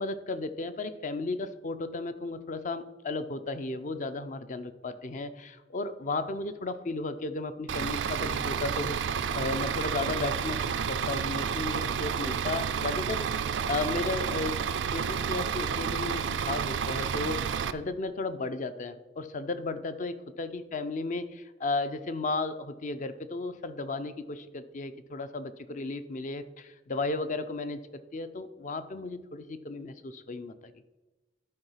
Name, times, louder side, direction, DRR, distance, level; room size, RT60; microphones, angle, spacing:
voice 1, 0.0-13.3 13.7-14.6 14.9-17.4 17.7-30.7, left 3 dB, 45° left, 11 dB, 0.6 m, -34 dB
Bus / Idling, 7.7-17.7, right 7 dB, 90° right, 0.4 m, -30 dB
11.0 x 4.6 x 5.7 m, 1.1 s
head